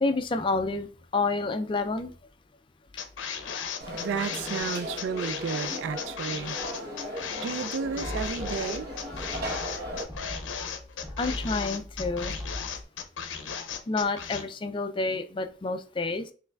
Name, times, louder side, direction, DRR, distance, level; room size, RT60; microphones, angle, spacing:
voice 1, 0.0-0.9 1.1-2.1 11.2-12.4 13.9-16.3, left 3 dB, 25° left, 0.3 m, -29 dB
sound 1, 3.0-14.4, left 7 dB, 75° left, 0.6 m, -36 dB
Conversation / Crowd, 3.8-10.0, equal, 50° right, 1.0 m, -37 dB
voice 2, 4.0-6.6 7.4-8.9, right 6 dB, 70° right, 0.3 m, -32 dB
sound 2, 7.8-12.8, left 1 dB, 5° right, 0.7 m, -40 dB
5.6 x 3.2 x 2.3 m
head